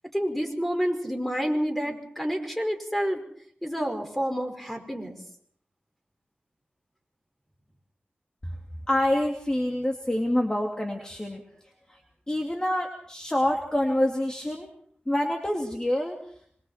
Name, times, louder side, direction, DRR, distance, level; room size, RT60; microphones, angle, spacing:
voice 1, 0.1-3.2 3.6-5.2, equal, 5° left, 4 dB, 5.2 m, -29 dB
voice 2, 8.9-11.4 11.9-12.0 12.3-14.7 15.1-16.2, left 1 dB, 20° left, 1 dB, 2.6 m, -26 dB
26.0 x 24.0 x 4.4 m, 0.63 s
wide cardioid pair, 70°, 4 cm